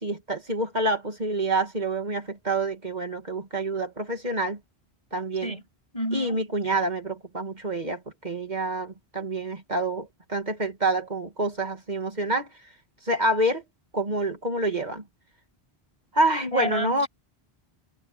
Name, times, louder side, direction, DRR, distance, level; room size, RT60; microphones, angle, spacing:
voice 1, 0.0-4.6 5.1-5.5 6.1-12.5 13.0-13.6 13.9-15.0 16.1-17.1, right 2 dB, 45° right, 2.5 m, -27 dB
voice 2, 5.9-6.8 16.5-17.1, equal, 35° left, 7.1 m, -30 dB
omnidirectional pair, 1.0 m